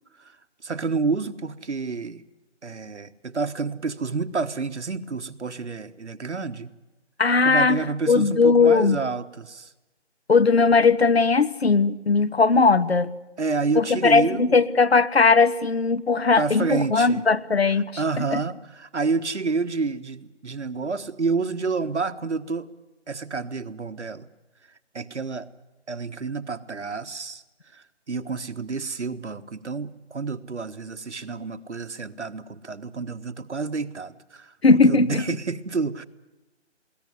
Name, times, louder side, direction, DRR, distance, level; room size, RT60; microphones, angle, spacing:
voice 1, 0.6-2.2 2.6-6.7 7.4-9.7 13.4-14.6 16.4-17.2 18.0-22.7 23.1-24.3 24.9-25.5 25.9-27.4 27.7-34.5 34.9-36.1, right 4 dB, 75° right, 10 dB, 1.4 m, -29 dB
voice 2, 7.2-9.0 10.3-13.1 13.8-17.9 18.2-18.4 34.6-35.2, left 4 dB, 60° left, 16 dB, 1.1 m, -19 dB
22.0 x 17.0 x 9.5 m, 1.1 s
figure-of-eight pair, 175°, 35 cm